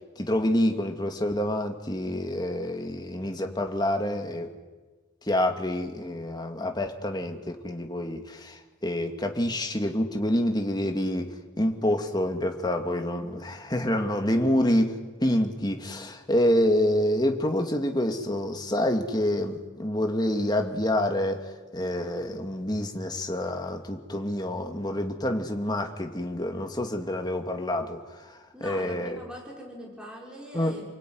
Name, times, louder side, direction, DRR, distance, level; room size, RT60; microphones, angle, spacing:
voice 1, 0.2-4.5 5.2-29.2 30.5-30.8, left 1 dB, 20° left, 4 dB, 2.4 m, -27 dB
voice 2, 12.9-13.3 28.5-30.9, equal, 5° right, -3 dB, 6.1 m, -42 dB
29.0 x 21.0 x 9.5 m, 1.3 s
head